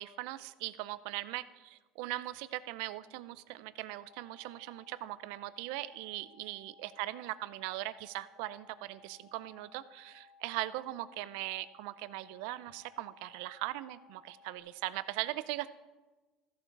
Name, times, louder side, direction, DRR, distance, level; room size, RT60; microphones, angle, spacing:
voice 1, 0.0-15.7, right 17 dB, 75° right, 16 dB, 0.4 m, -40 dB
sound 1, 3.9-14.6, left 5 dB, 20° left, 1.0 m, -61 dB
14.5 x 7.1 x 4.6 m, 1.2 s
cardioid pair, 135°, 0 cm